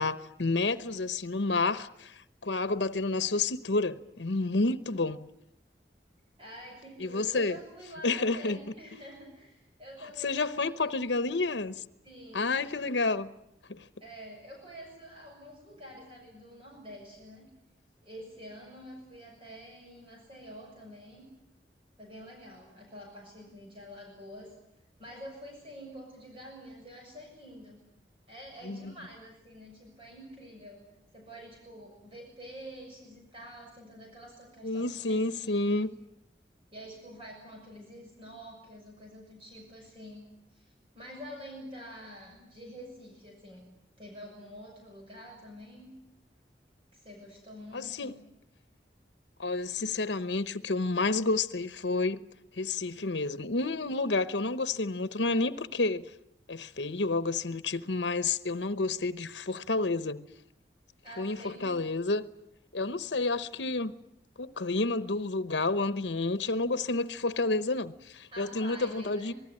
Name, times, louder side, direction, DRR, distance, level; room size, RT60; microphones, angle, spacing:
voice 1, 0.0-5.3 7.0-7.6 8.0-8.6 10.2-11.8 12.3-13.3 13.7-13.9 28.6-28.9 34.6-35.9 47.7-48.1 49.4-52.2 52.5-56.0 56.5-60.3 61.2-62.2 62.7-63.9 64.4-69.3, left 3 dB, 90° left, 1.0 m, -30 dB
voice 2, 6.4-11.1 12.0-12.4 14.0-17.5 18.0-21.3 22.0-24.5 25.0-27.8 28.3-30.8 31.1-35.9 36.7-40.2 40.5-43.7 44.0-45.9 46.9-48.2 61.0-61.8 68.3-69.3, equal, 30° right, 6.9 m, -47 dB
26.5 x 19.5 x 9.8 m
head